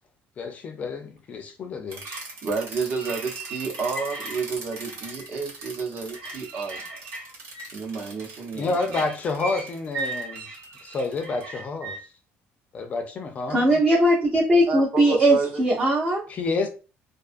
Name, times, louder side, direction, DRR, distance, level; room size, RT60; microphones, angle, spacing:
voice 1, 0.4-2.0 8.5-10.5 10.8-12.0 12.7-13.6 16.3-16.7, left 3 dB, 35° left, 0.4 m, -29 dB
sound 1, 1.9-12.0, right 3 dB, 75° right, 1.2 m, -37 dB
voice 2, 2.4-6.8 7.7-9.0 14.7-15.6, right 4 dB, 45° right, 0.8 m, -30 dB
voice 3, 13.5-16.2, right 1 dB, 25° right, 0.5 m, -19 dB
2.5 x 2.3 x 2.4 m
cardioid pair, 150°, 4 cm